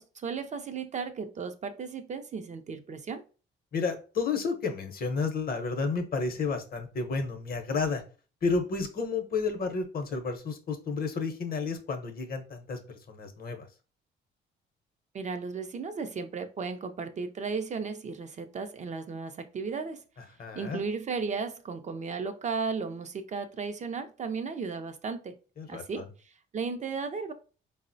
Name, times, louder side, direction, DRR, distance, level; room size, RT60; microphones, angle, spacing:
voice 1, 0.0-3.2 15.1-20.0 20.5-25.3 25.7-27.3, right 5 dB, 35° right, 0.4 m, -35 dB
voice 2, 3.7-8.0 8.4-12.8 13.1-13.7 20.4-20.8 25.6-26.1, left 4 dB, 50° left, 0.7 m, -31 dB
3.7 x 2.0 x 2.5 m
cardioid pair, 90°, 20 cm